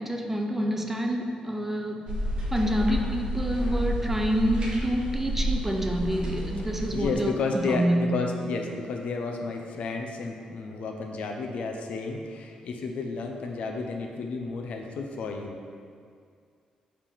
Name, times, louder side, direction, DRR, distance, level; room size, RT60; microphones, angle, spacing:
voice 1, 0.0-2.2 2.5-8.2, equal, 10° right, 3 dB, 0.4 m, -27 dB
sound 1, 2.1-7.1, equal, 40° right, 1.0 m, -30 dB
voice 2, 6.6-15.6, left 4 dB, 70° left, 3 dB, 0.6 m, -32 dB
5.0 x 3.4 x 5.6 m, 2.2 s
cardioid pair, 135°, 2 cm